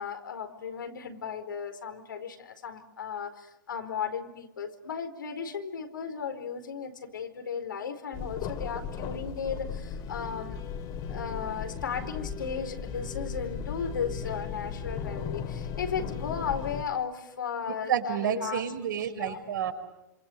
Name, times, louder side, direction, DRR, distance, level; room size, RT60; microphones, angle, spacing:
voice 1, 0.0-10.6 11.1-18.6 19.2-19.4, left 6 dB, 85° left, 7 dB, 4.5 m, -35 dB
sound 1, 8.1-16.8, left 6 dB, 35° left, 2.9 m, -36 dB
voice 2, 17.9-19.7, right 9 dB, 75° right, 4 dB, 5.9 m, -29 dB
27.5 x 27.0 x 8.1 m, 0.91 s
hypercardioid pair, 130°, 10 cm